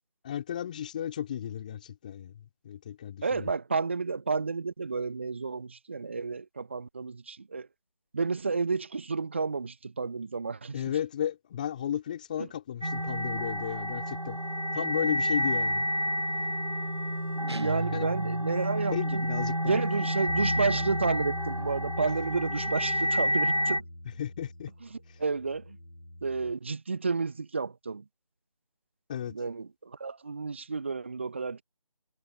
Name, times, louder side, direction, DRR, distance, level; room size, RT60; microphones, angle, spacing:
voice 1, 0.2-3.5 10.7-14.4 14.7-15.9 17.9-18.1 18.9-19.8 24.2-24.7 29.1-29.3, left 10 dB, 15° left, 4.3 m, -34 dB
voice 2, 3.2-7.7 8.1-10.8 12.4-12.5 17.4-19.2 19.6-23.8 25.2-25.8 26.2-28.0 29.3-31.6, right 4 dB, 20° right, 1.2 m, -31 dB
sound 1, 12.8-23.8, equal, 85° right, 4.1 m, -30 dB
sound 2, 17.5-18.8, right 3 dB, 45° right, 1.0 m, -36 dB
Bass guitar, 20.3-26.5, left 1 dB, 80° left, 3.3 m, -40 dB
figure-of-eight pair, 165°, 19 cm